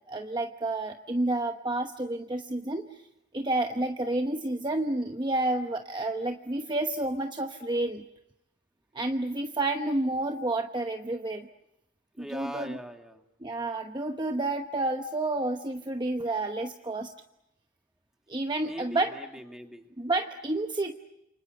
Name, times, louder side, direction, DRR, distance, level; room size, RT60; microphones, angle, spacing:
voice 1, 0.1-3.0 3.3-8.0 8.9-11.5 12.3-12.8 13.4-17.1 18.3-19.1 20.0-20.9, right 2 dB, 25° right, 5 dB, 1.0 m, -30 dB
voice 2, 12.2-13.2 18.6-19.9, equal, 5° right, 4 dB, 2.2 m, -41 dB
28.5 x 25.0 x 7.9 m, 0.89 s
head